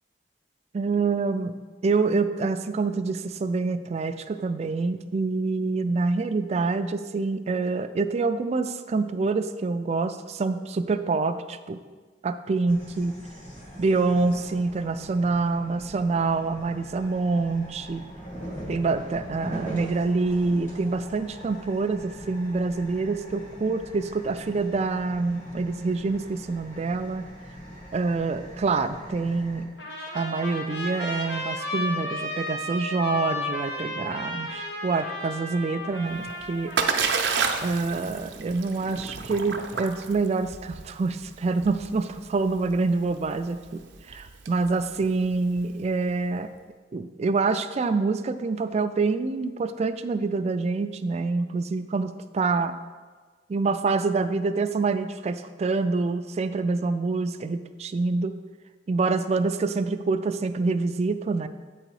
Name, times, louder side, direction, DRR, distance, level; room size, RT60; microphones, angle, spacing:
voice 1, 0.7-1.5 1.8-11.8 12.2-13.2 13.8-18.0 18.7-27.3 27.9-29.7 30.1-36.7 37.6-43.8 44.1-46.5 46.9-52.7 53.5-58.3 58.9-61.5, right 3 dB, 40° right, 10 dB, 0.3 m, -26 dB
sound 1, 12.7-29.6, equal, 45° left, 2.0 m, -42 dB
Trumpet, 29.8-37.4, left 2 dB, 80° left, 1.2 m, -33 dB
Splash splatter, 36.1-45.9, right 5 dB, 80° right, 0.6 m, -31 dB
8.2 x 3.8 x 4.7 m, 1.4 s
head